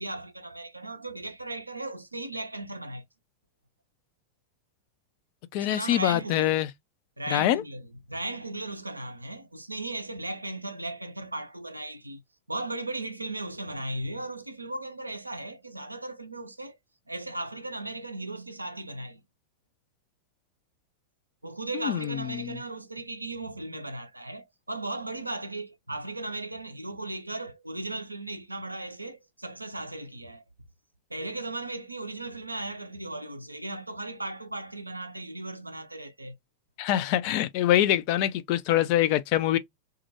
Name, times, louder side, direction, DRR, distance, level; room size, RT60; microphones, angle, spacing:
voice 1, 0.0-3.0 5.6-6.6 7.2-12.2 12.5-16.8 17.1-19.2 21.4-30.4 31.1-36.4 38.7-38.9, right 2 dB, 85° right, 0.4 m, -37 dB
voice 2, 5.5-6.7 7.3-7.6 21.7-22.6 36.8-39.6, left 13 dB, 45° left, 0.3 m, -24 dB
2.3 x 2.0 x 2.7 m
figure-of-eight pair, 90°, 0 cm